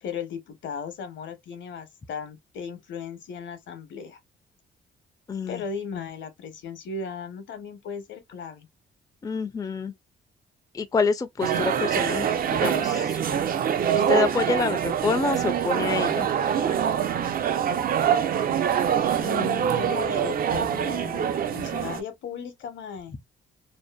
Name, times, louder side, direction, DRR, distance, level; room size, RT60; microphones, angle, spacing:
voice 1, 0.0-4.2 5.5-8.7 19.2-23.2, left 6 dB, 70° left, 0.8 m, -36 dB
voice 2, 5.3-5.6 9.2-9.9 10.7-12.3 12.6-13.2 13.9-16.3, left 4 dB, 20° left, 0.4 m, -27 dB
sound 1, 11.4-22.0, right 8 dB, 45° right, 0.4 m, -25 dB
2.6 x 2.1 x 2.2 m
cardioid pair, 90°, 20 cm